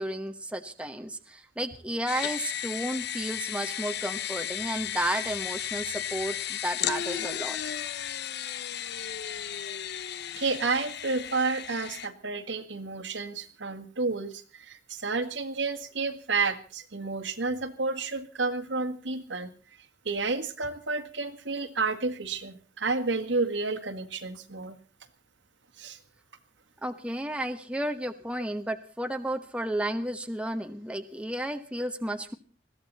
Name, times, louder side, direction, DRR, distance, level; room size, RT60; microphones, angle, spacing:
voice 1, 0.0-7.6 26.8-32.3, right 1 dB, 5° right, 7 dB, 1.1 m, -32 dB
sound 1, 2.1-12.1, left 10 dB, 60° left, 0.8 m, -34 dB
voice 2, 10.4-19.5 20.1-24.8 25.8-26.0, right 3 dB, 75° right, 7 dB, 1.9 m, -30 dB
21.0 x 16.0 x 4.2 m, 0.37 s
head